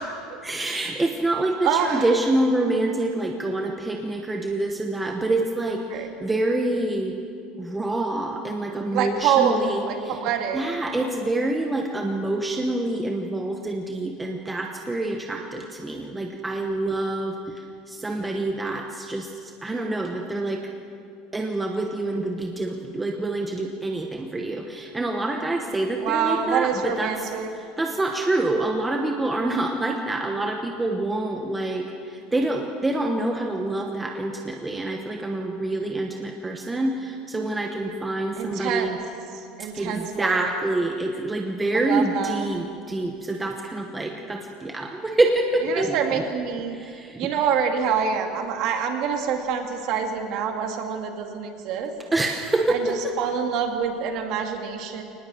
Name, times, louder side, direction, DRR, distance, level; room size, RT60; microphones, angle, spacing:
voice 1, 0.4-7.2 7.6-10.2 10.5-20.7 21.3-27.3 27.6-39.0 39.6-46.2 46.7-47.3 52.1-53.2, right 2 dB, 10° right, 2 dB, 1.0 m, -26 dB
voice 2, 1.6-2.1 5.9-6.1 8.9-10.6 26.0-27.5 38.4-39.0 39.3-40.5 41.7-42.4 45.7-46.8 47.2-51.9 52.7-55.0, right 7 dB, 45° right, 4 dB, 2.3 m, -26 dB
23.5 x 19.5 x 7.7 m, 2.5 s
cardioid pair, 175°, 0 cm